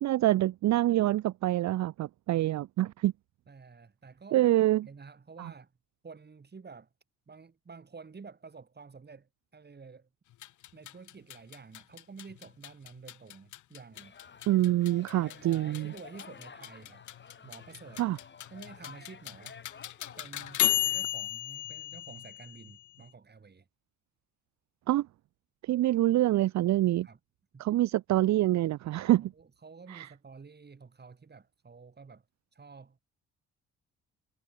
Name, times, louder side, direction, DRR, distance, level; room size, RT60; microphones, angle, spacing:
voice 1, 0.0-3.1 4.3-4.9 5.4-5.5 14.5-15.9 18.0-18.2 24.9-25.1 25.6-27.1 27.6-29.3 29.9-30.1, right 15 dB, 65° right, 0.6 m, -26 dB
voice 2, 3.5-5.7 6.0-6.9 7.3-10.1 10.7-14.1 15.2-17.0 17.4-18.0 18.5-19.6 20.2-23.7 27.0-27.2 27.5-27.6 28.9-32.3 32.5-33.0, right 5 dB, 35° right, 7.2 m, -50 dB
sound 1, 10.3-23.0, left 14 dB, 75° left, 1.6 m, -36 dB
sound 2, 13.9-21.0, left 6 dB, 35° left, 3.4 m, -52 dB
cardioid pair, 90°, 30 cm